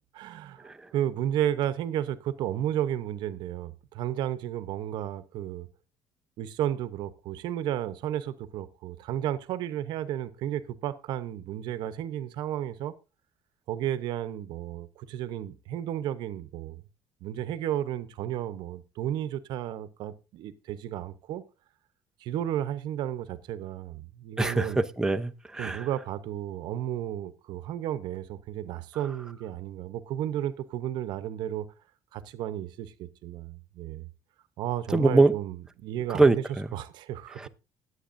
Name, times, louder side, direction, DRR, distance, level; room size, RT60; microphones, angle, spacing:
voice 1, 0.1-5.7 6.4-12.9 13.7-16.8 17.2-21.4 22.2-24.8 25.6-31.7 32.1-34.1 34.6-36.4 36.7-37.5, right 11 dB, 70° right, 0.9 m, -33 dB
voice 2, 24.4-25.9 34.9-35.3 36.1-36.7 37.4-37.5, right 2 dB, 5° right, 0.7 m, -23 dB
20.0 x 8.1 x 2.6 m
cardioid pair, 100°, 8 cm